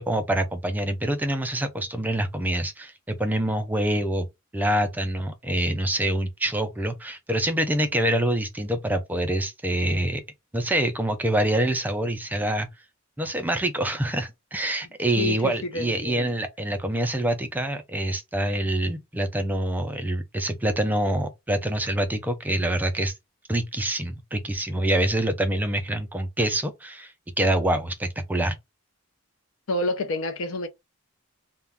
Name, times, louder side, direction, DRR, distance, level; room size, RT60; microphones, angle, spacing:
voice 1, 0.0-4.3 4.5-10.2 10.5-12.7 13.2-23.1 23.5-28.6, right 1 dB, 10° right, 0.3 m, -26 dB
voice 2, 15.2-16.3 29.7-30.7, left 2 dB, 65° left, 0.5 m, -28 dB
2.2 x 2.1 x 3.3 m
head